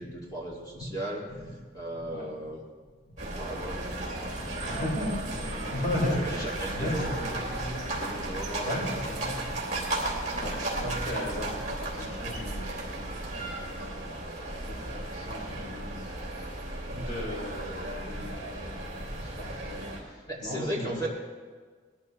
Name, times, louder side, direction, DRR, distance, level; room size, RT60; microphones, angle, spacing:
voice 1, 0.0-1.2 1.7-2.6 3.4-3.8 6.2-8.7 20.3-21.1, right 1 dB, 20° left, -3 dB, 2.3 m, -36 dB
voice 2, 1.9-2.3 3.1-3.2 3.9-7.6 7.9-21.1, left 1 dB, 50° left, -3 dB, 4.7 m, -37 dB
sound 1, 3.2-20.0, right 1 dB, 40° right, 3.2 m, -35 dB
19.5 x 13.5 x 3.2 m, 1.5 s
head